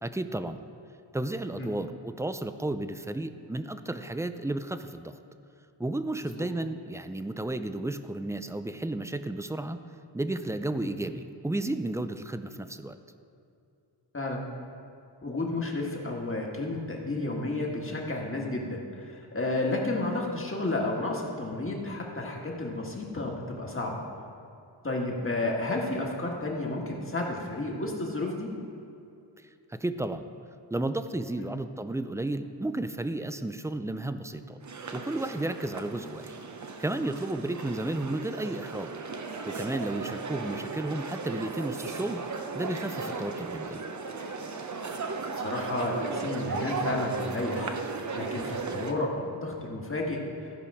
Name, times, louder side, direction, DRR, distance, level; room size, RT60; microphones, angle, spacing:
voice 1, 0.0-0.6 1.1-5.1 5.8-9.8 10.1-13.0 29.7-30.2 30.7-34.6 34.9-36.3 36.8-38.9 39.5-42.2 42.5-43.8, right 2 dB, 5° right, 10 dB, 0.3 m, -33 dB
voice 2, 14.1-14.5 15.2-24.0 24.8-28.5 31.4-31.5 40.4-40.6 45.4-50.6, left 2 dB, 25° left, -1 dB, 1.7 m, -32 dB
sound 1, 34.6-48.9, right 4 dB, 40° right, 0.7 m, -36 dB
15.0 x 5.2 x 4.9 m, 2.6 s
wide cardioid pair, 80°, 46 cm